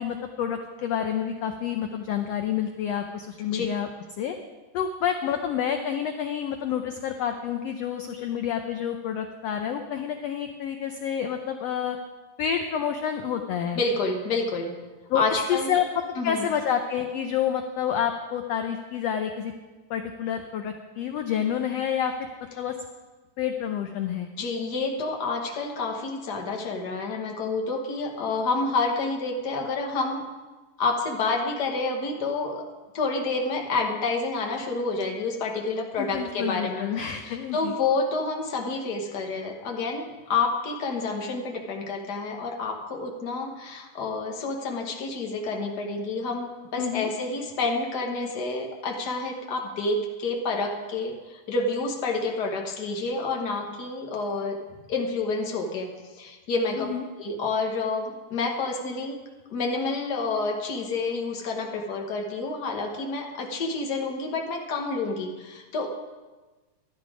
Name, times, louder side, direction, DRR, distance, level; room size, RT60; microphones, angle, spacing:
voice 1, 0.0-3.9 4.2-4.3 4.7-12.0 12.4-13.8 15.1-15.2 15.5-15.8 16.2-19.5 19.9-22.3 22.6-22.7 23.4-24.3 36.0-37.7 46.8-47.1 56.8-57.0, left 8 dB, 85° left, 5 dB, 1.4 m, -28 dB
voice 2, 13.7-14.8 15.1-15.7 16.2-16.5 24.4-30.2 30.8-32.6 32.9-36.9 37.2-54.6 54.9-56.9 57.2-59.2 59.5-65.9, left 3 dB, 60° left, 2 dB, 1.0 m, -29 dB
12.0 x 11.5 x 5.0 m, 1.2 s
omnidirectional pair, 3.7 m